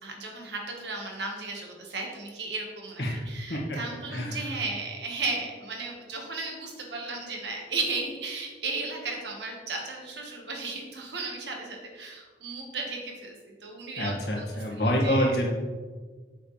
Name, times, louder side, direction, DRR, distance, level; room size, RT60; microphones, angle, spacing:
voice 1, 0.0-13.4 13.6-15.3, right 3 dB, 70° right, 1 dB, 1.6 m, -35 dB
voice 2, 4.1-4.4 14.0-15.5, equal, 60° left, -3 dB, 1.9 m, -27 dB
8.0 x 6.8 x 3.3 m, 1.4 s
head